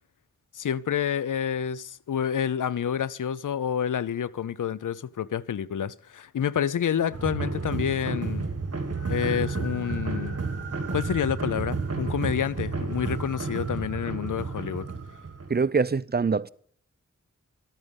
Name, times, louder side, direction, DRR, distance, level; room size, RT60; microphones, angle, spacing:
voice 1, 0.5-8.4 9.1-10.3 10.9-14.9, left 8 dB, 90° left, 0.5 m, -28 dB
sound 1, 7.1-15.6, right 4 dB, 50° right, 1.6 m, -31 dB
voice 2, 15.5-16.5, right 4 dB, 35° right, 0.5 m, -24 dB
13.0 x 8.9 x 8.1 m
cardioid pair, 40°, 31 cm